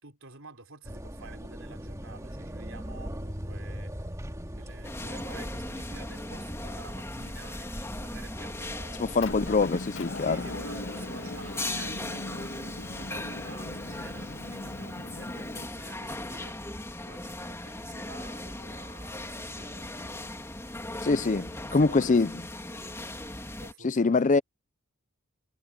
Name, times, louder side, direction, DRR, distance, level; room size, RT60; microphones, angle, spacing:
voice 1, 0.0-3.9 4.5-9.4 10.2-16.6 17.1-20.3 21.1-22.2 23.6-24.4, right 3 dB, 65° right, 4.4 m, -49 dB
sound 1, 0.9-9.6, equal, 15° right, 2.5 m, -40 dB
sound 2, 4.8-23.7, left 1 dB, 15° left, 3.1 m, -38 dB
voice 2, 9.0-10.4 21.0-22.3 23.8-24.4, left 3 dB, 35° left, 0.5 m, -24 dB
Motor vehicle (road) / Engine, 9.2-15.7, left 2 dB, 60° left, 1.9 m, -39 dB
head